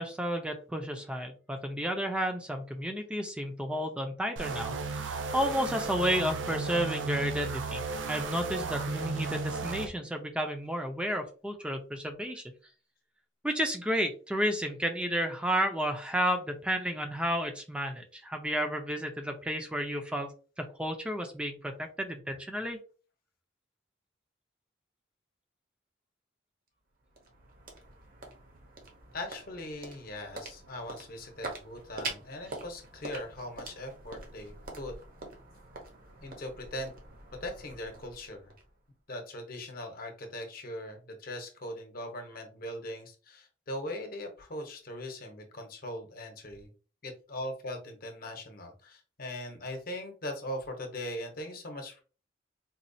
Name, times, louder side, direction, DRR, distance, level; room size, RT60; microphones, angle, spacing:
voice 1, 0.0-12.4 13.4-20.3 20.6-22.8, equal, 5° right, 4 dB, 0.5 m, -32 dB
sound 1, 4.4-9.9, right 4 dB, 80° right, 0.5 m, -34 dB
sound 2, 26.7-39.1, right 2 dB, 50° right, 0.9 m, -45 dB
voice 2, 29.1-34.9 36.2-36.9 37.4-38.5 39.1-46.7 47.0-52.0, left 1 dB, 50° left, 4 dB, 0.9 m, -40 dB
4.2 x 2.3 x 2.6 m, 0.36 s
head